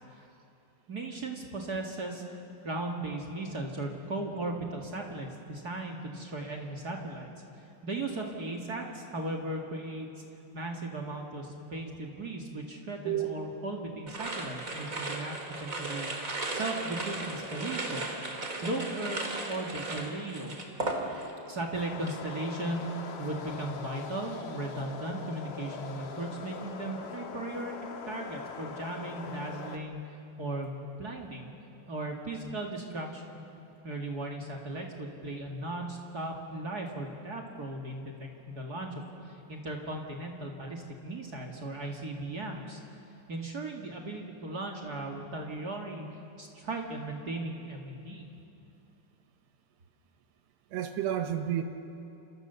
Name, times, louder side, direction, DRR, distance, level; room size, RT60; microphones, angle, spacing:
voice 1, 0.9-7.3 7.8-10.1 10.5-15.3 15.6-18.1 18.6-19.2 19.5-20.6 21.5-22.8 23.2-30.0 30.4-31.5 31.9-33.2 33.8-42.8 43.3-46.0 46.4-48.2, right 2 dB, 40° right, 0 dB, 1.4 m, -37 dB
voice 2, 13.1-13.5 50.7-51.6, right 11 dB, 75° right, 7 dB, 3.2 m, -31 dB
sound 1, 14.1-21.5 21.8-22.2, right 2 dB, 25° right, 2.3 m, -36 dB
sound 2, 21.7-29.8, left 5 dB, 70° left, 1.5 m, -42 dB
29.5 x 28.5 x 7.0 m, 2.8 s
omnidirectional pair, 5.1 m